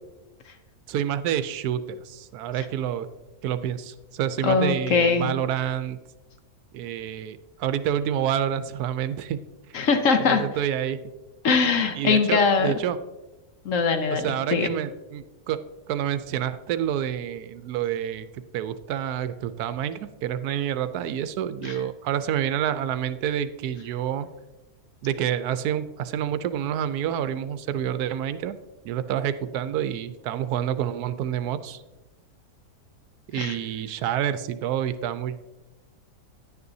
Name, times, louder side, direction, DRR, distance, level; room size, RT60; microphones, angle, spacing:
voice 1, 0.9-3.1 3.4-6.0 6.7-9.4 10.2-11.0 12.0-13.0 14.1-15.6 15.9-24.3 25.0-28.5 28.8-31.8 33.3-35.5, right 10 dB, 80° right, 12 dB, 1.1 m, -28 dB
voice 2, 4.4-5.3 9.7-10.4 11.4-12.7 13.6-14.7 21.6-21.7 33.4-33.6, left 5 dB, 60° left, 7 dB, 1.1 m, -22 dB
10.5 x 9.6 x 2.7 m, 1.1 s
omnidirectional pair, 1.6 m